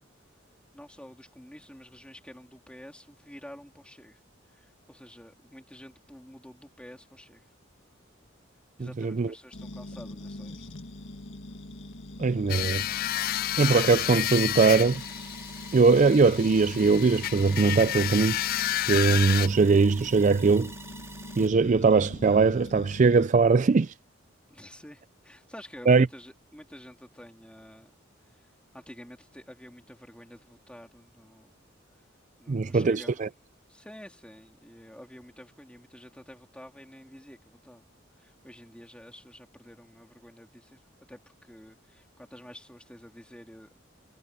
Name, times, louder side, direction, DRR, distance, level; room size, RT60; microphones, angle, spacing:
voice 1, 0.7-4.2 4.5-7.5 8.8-10.7 24.5-27.9 28.3-31.5 31.9-32.1 32.4-33.2 33.7-37.9 38.1-40.8 41.1-43.8, equal, 5° left, 3.6 m, -49 dB
voice 2, 9.0-9.3 12.2-12.8 13.6-15.0 15.7-18.4 18.9-20.7 21.4-23.9 25.9-26.1 32.5-33.3, right 4 dB, 40° right, 0.4 m, -21 dB
sound 1, 9.5-23.3, left 1 dB, 70° left, 2.1 m, -43 dB
sound 2, 12.5-19.5, left 13 dB, 50° left, 0.3 m, -30 dB
sound 3, 14.2-21.5, right 3 dB, 15° right, 3.5 m, -48 dB
head